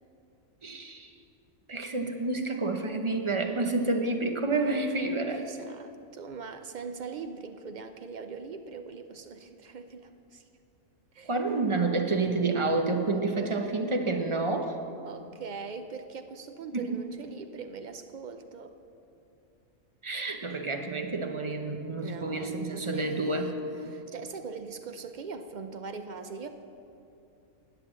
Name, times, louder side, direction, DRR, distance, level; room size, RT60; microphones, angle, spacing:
voice 1, 0.6-1.1 1.7-5.4 11.2-14.7 16.7-16.9 20.0-23.5, right 3 dB, 25° right, 4 dB, 0.7 m, -29 dB
voice 2, 5.3-10.4 11.1-11.3 15.0-18.8 22.0-26.5, right 5 dB, 75° right, 8 dB, 0.4 m, -41 dB
11.0 x 9.3 x 7.4 m, 2.7 s
omnidirectional pair, 1.5 m